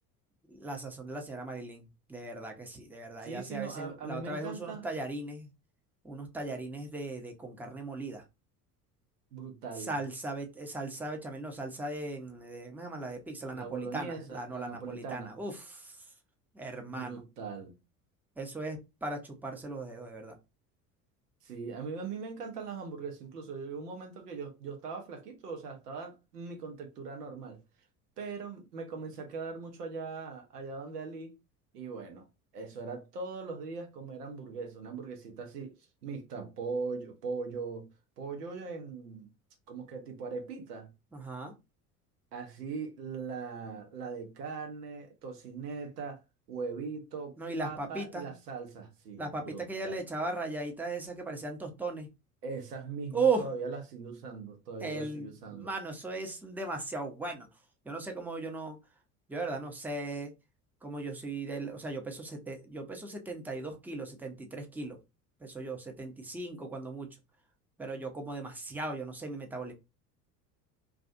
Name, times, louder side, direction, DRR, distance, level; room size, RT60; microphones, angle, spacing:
voice 1, 0.5-5.5 6.0-8.2 9.8-16.1 16.5-17.2 18.4-20.4 41.1-41.5 47.4-48.3 49.2-52.1 53.1-53.5 54.8-57.5 57.8-58.8 59.3-60.3 60.8-65.0 65.4-67.1 67.8-69.7, right 3 dB, 5° right, 0.6 m, -37 dB
voice 2, 3.2-4.9 9.3-9.9 13.5-15.4 16.9-17.7 21.4-27.6 28.2-31.4 31.7-32.3 32.5-35.8 36.0-37.9 38.2-39.3 39.7-40.9 42.3-46.2 46.5-50.0 52.4-55.7, right 4 dB, 85° right, 0.9 m, -40 dB
2.4 x 2.3 x 2.5 m
hypercardioid pair, 70°, 46 cm